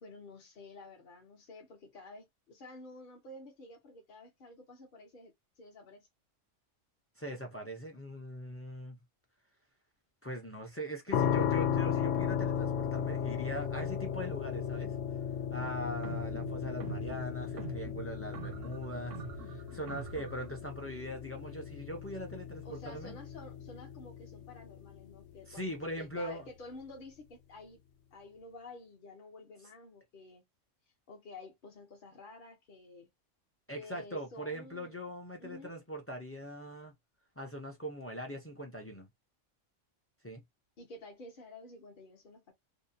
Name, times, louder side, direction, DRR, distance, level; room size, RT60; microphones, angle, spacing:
voice 1, 0.0-6.1 22.6-27.8 28.1-30.4 31.1-33.1 33.7-35.0 35.4-35.7 40.8-42.5, left 2 dB, 50° left, 0.8 m, -51 dB
voice 2, 7.2-9.0 10.2-14.9 15.5-23.2 25.5-26.5 33.7-36.9 37.4-39.1 40.2-40.4, equal, 20° left, 0.3 m, -41 dB
sound 1, 11.1-26.0, left 8 dB, 90° left, 1.0 m, -36 dB
sound 2, 15.6-20.6, right 8 dB, 80° right, 0.9 m, -46 dB
2.7 x 2.0 x 2.6 m
omnidirectional pair, 1.3 m